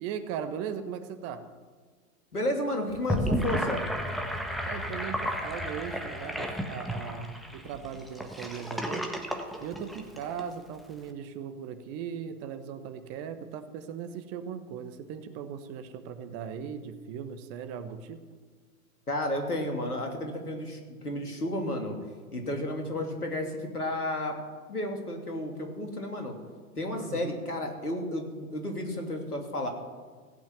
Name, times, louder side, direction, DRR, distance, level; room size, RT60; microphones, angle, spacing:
voice 1, 0.0-1.4 4.6-9.1 9.6-18.2 26.9-27.4, right 7 dB, 30° right, 10 dB, 1.2 m, -38 dB
voice 2, 2.3-3.8 19.1-22.0 22.3-24.3 24.7-26.3 26.8-29.7, left 1 dB, 80° left, 3 dB, 3.1 m, -32 dB
Gurgling / Sink (filling or washing), 2.9-10.4, equal, ahead, 1.3 m, -33 dB
16.0 x 8.9 x 9.0 m, 1.4 s
figure-of-eight pair, 100°, 45 cm